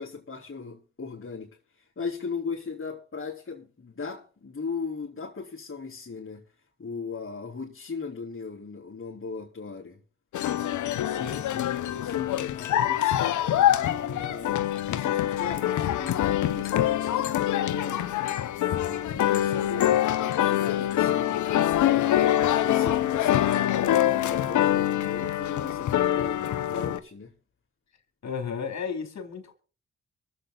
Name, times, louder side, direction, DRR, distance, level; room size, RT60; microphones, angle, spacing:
voice 1, 0.0-6.5 6.8-10.0 10.6-11.4 11.8-14.6 14.9-18.1 18.6-21.4 21.9-27.3, left 5 dB, 45° left, 3.4 m, -38 dB
sound 1, 10.3-27.0, left 12 dB, 80° left, 0.8 m, -25 dB
voice 2, 11.0-11.8 28.2-29.5, left 6 dB, 65° left, 3.1 m, -34 dB
23.5 x 8.0 x 3.9 m
supercardioid pair, 40°, 30 cm